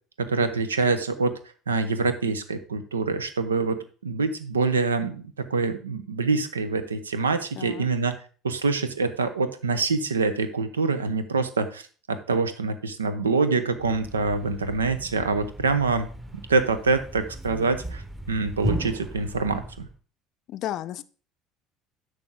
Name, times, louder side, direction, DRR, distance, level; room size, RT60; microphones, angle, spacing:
voice 1, 0.2-1.3 1.7-8.2 8.4-16.1 16.3-19.9, right 4 dB, 80° right, 12 dB, 0.8 m, -25 dB
voice 2, 7.6-7.9 20.5-21.0, left 13 dB, 50° left, 14 dB, 0.5 m, -33 dB
Thump thud, 13.8-20.0, right 1 dB, 10° right, 1.3 m, -36 dB
10.5 x 6.5 x 3.7 m, 0.40 s
figure-of-eight pair, 65°, 0 cm